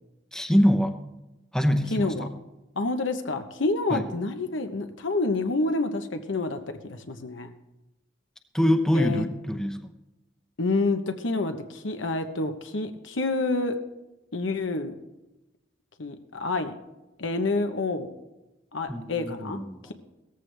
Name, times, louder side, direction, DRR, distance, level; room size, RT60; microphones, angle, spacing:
voice 1, 0.3-0.9 1.5-2.3 3.9-4.0 8.5-9.8 18.9-19.8, equal, 5° left, 5 dB, 0.8 m, -24 dB
voice 2, 1.9-2.3 2.8-7.5 8.9-9.2 10.6-13.7 14.3-14.9 16.0-16.7 17.2-18.1 18.7-19.6, left 3 dB, 85° left, 7 dB, 1.0 m, -28 dB
17.0 x 14.5 x 3.4 m, 0.99 s
head